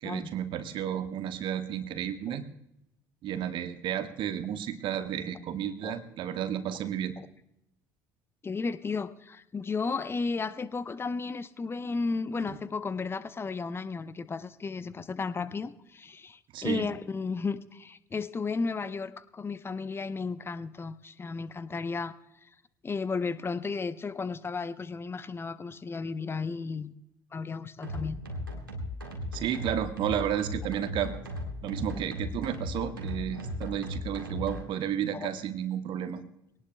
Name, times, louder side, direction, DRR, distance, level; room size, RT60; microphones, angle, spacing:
voice 1, 0.0-2.4 3.2-7.1 12.5-12.6 16.5-16.9 29.3-31.1 31.6-36.2, right 10 dB, 45° right, 8 dB, 1.3 m, -32 dB
voice 2, 8.4-22.1 22.8-26.9 27.3-28.2 35.1-35.3, left 4 dB, 20° left, 14 dB, 0.8 m, -34 dB
sound 1, 27.8-34.6, left 1 dB, 85° right, 1.8 m, -37 dB
23.0 x 18.5 x 2.2 m, 0.82 s
figure-of-eight pair, 60°, 11 cm